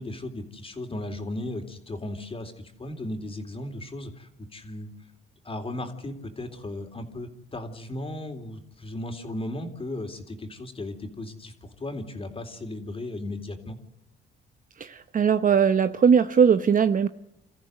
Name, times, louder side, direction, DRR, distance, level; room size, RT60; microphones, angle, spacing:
voice 1, 0.0-4.9 5.4-13.8, left 1 dB, 30° left, 5 dB, 3.6 m, -36 dB
voice 2, 14.8-17.1, right 7 dB, 45° right, 11 dB, 0.9 m, -20 dB
28.0 x 14.5 x 8.0 m, 0.88 s
cardioid pair, 90°, 20 cm